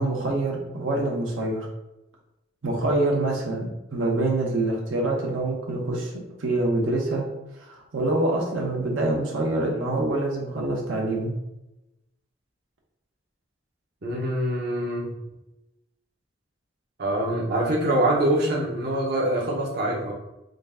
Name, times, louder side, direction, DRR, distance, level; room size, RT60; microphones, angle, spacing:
voice 1, 0.0-1.7 2.6-6.1 6.4-7.2 7.6-11.3, right 2 dB, 85° right, -1 dB, 0.9 m, -25 dB
voice 2, 14.0-15.1 17.0-20.1, right 1 dB, 55° right, -3 dB, 0.7 m, -24 dB
3.8 x 2.2 x 3.5 m, 0.94 s
head